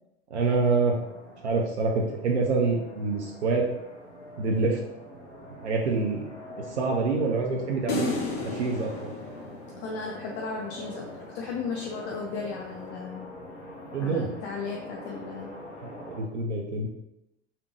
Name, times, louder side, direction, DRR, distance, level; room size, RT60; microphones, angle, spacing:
voice 1, 0.3-1.0 1.4-3.7 4.4-4.8 5.6-6.2 6.6-8.1 8.4-9.1 13.9-14.3 15.8-16.9, right 3 dB, 80° right, 0 dB, 0.5 m, -26 dB
sound 1, 1.0-16.2, left 1 dB, 90° left, 0.8 m, -44 dB
sound 2, 7.9-10.3, left 3 dB, 55° left, 1.0 m, -33 dB
voice 2, 9.8-11.1 11.3-13.3 14.0-15.6, left 4 dB, 35° left, 0 dB, 0.5 m, -35 dB
3.3 x 2.8 x 3.1 m, 0.89 s
figure-of-eight pair, 75°, 34 cm